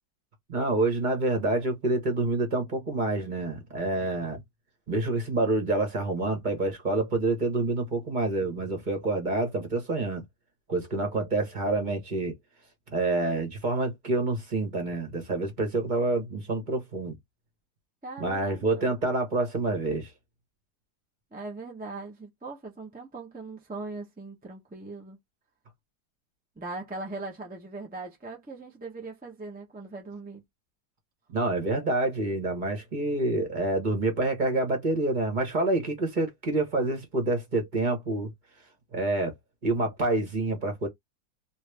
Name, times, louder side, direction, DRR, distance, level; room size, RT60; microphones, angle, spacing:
voice 1, 0.5-4.4 4.9-10.2 10.7-12.3 12.9-17.1 18.2-20.1 31.3-38.3 38.9-39.3 39.6-40.9, right 2 dB, 30° right, 1.0 m, -27 dB
voice 2, 18.0-18.8 21.3-25.2 26.6-30.4, right 3 dB, 15° right, 0.3 m, -40 dB
3.1 x 2.6 x 3.3 m
omnidirectional pair, 2.0 m